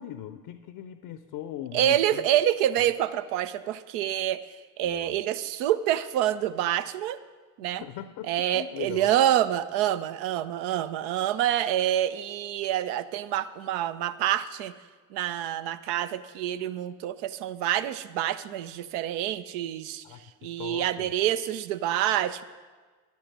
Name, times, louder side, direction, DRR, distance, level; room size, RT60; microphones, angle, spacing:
voice 1, 0.0-2.3 2.8-2.9 4.8-5.2 7.6-9.1 20.0-21.1, left 11 dB, 60° left, 12 dB, 0.6 m, -40 dB
voice 2, 1.7-7.2 7.6-7.8 8.3-14.7 15.1-20.0 20.4-22.4, right 12 dB, 70° right, 13 dB, 0.6 m, -27 dB
11.5 x 9.3 x 6.0 m, 1.4 s
figure-of-eight pair, 40°, 45 cm